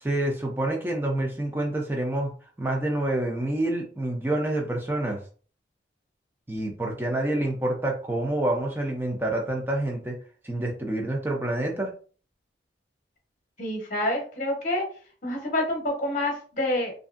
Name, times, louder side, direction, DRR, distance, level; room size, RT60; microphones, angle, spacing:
voice 1, 0.0-2.3 2.6-5.2 6.5-10.2 10.4-11.9, right 1 dB, 10° right, 1 dB, 0.5 m, -27 dB
voice 2, 13.6-14.9 15.2-16.9, left 1 dB, 40° left, 1 dB, 0.8 m, -27 dB
2.9 x 2.5 x 2.4 m, 0.40 s
head